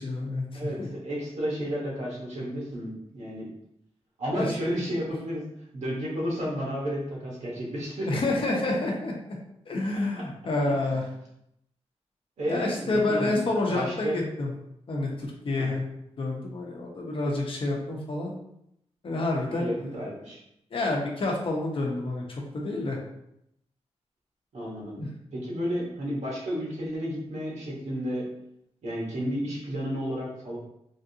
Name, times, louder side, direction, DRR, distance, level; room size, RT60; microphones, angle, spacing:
voice 1, 0.0-0.9 4.3-4.5 8.0-9.1 9.7-11.0 12.5-14.5 14.9-15.8 16.2-18.3 19.0-20.0 20.7-23.0 25.0-25.1, left 2 dB, 50° left, -1 dB, 0.7 m, -28 dB
voice 2, 0.5-3.4 4.2-5.4 5.7-8.1 10.9-11.0 12.4-13.4 13.7-14.2 15.6-15.8 19.5-20.4 24.5-25.0 25.3-28.3 28.8-30.6, equal, 80° right, -4 dB, 1.2 m, -32 dB
3.4 x 2.5 x 2.7 m, 0.78 s
wide cardioid pair, 145°, 12 cm